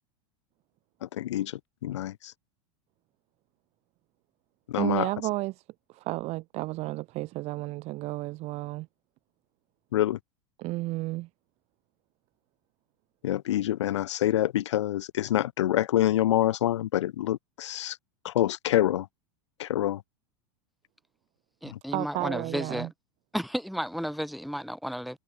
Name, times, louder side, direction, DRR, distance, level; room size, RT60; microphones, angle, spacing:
voice 1, 1.0-2.3 4.7-5.1 9.9-10.2 13.2-18.0 18.2-19.1 19.6-20.0 21.7-21.8, left 13 dB, 85° left, 1.8 m, -26 dB
voice 2, 4.7-5.6 5.9-8.9 10.6-11.3 21.9-22.9, right 20 dB, 45° right, 3.6 m, -32 dB
voice 3, 21.6-22.9 23.3-25.2, equal, ahead, 5.0 m, -33 dB
supercardioid pair, 125°, 15 cm